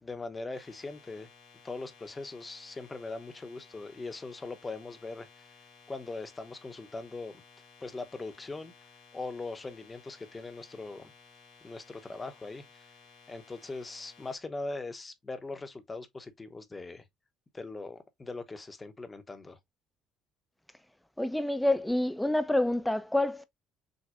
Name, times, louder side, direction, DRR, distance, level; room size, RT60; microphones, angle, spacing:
voice 1, 0.0-1.3 1.6-5.5 5.9-7.4 7.8-8.7 9.1-11.1 11.6-12.8 13.3-17.1 17.5-19.6, left 3 dB, 25° left, 0.9 m, -40 dB
sound 1, 0.5-14.4, left 5 dB, 75° left, 2.9 m, -57 dB
voice 2, 21.2-23.4, left 1 dB, 5° left, 0.6 m, -27 dB
6.4 x 2.5 x 2.5 m
supercardioid pair, 65°, 0 cm